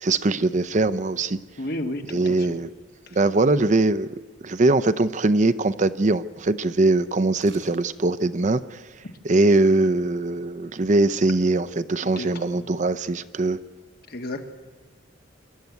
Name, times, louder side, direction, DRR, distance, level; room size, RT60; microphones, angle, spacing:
voice 1, 0.0-1.4 2.1-2.7 3.1-8.8 9.2-13.6, right 2 dB, 40° right, 14 dB, 0.6 m, -21 dB
voice 2, 1.6-2.4 12.2-12.3 12.5-12.6 14.1-14.4, left 1 dB, 50° left, 5 dB, 1.8 m, -31 dB
sound 1, 7.4-8.0 8.3-8.4, right 6 dB, 65° right, 4.4 m, -50 dB
26.5 x 12.0 x 9.5 m, 1.3 s
head